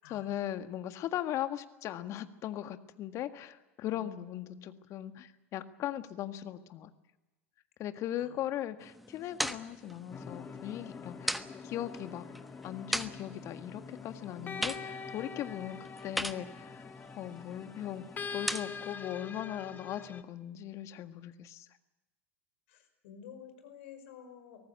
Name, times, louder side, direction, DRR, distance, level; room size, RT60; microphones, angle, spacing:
voice 1, 0.1-6.9 7.8-12.3 12.6-16.8 17.1-18.0 18.3-21.7, left 12 dB, 45° left, 9 dB, 1.7 m, -39 dB
voice 2, 4.0-5.0 8.2-8.3 22.7-24.6, left 5 dB, 65° left, 8 dB, 5.3 m, -51 dB
sound 1, 8.8-18.9, equal, ahead, 1.2 m, -41 dB
sound 2, 10.1-20.2, left 5 dB, 25° left, 1.8 m, -45 dB
24.0 x 18.5 x 8.3 m, 1.0 s
hypercardioid pair, 85°, 7 cm